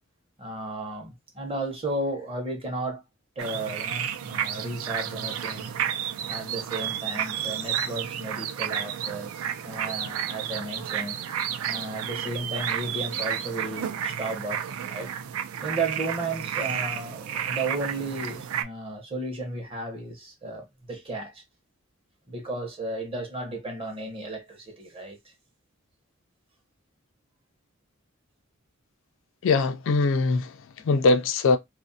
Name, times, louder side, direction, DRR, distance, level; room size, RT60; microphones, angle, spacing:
voice 1, 0.4-3.0 3.4-5.9 6.3-11.2 11.6-15.1 15.6-21.4 22.3-25.3, right 2 dB, 25° right, 0.8 m, -34 dB
sound 1, 3.4-18.6, right 9 dB, 75° right, 0.3 m, -31 dB
voice 2, 29.4-31.6, left 3 dB, 65° left, 0.4 m, -22 dB
2.4 x 2.0 x 2.6 m
head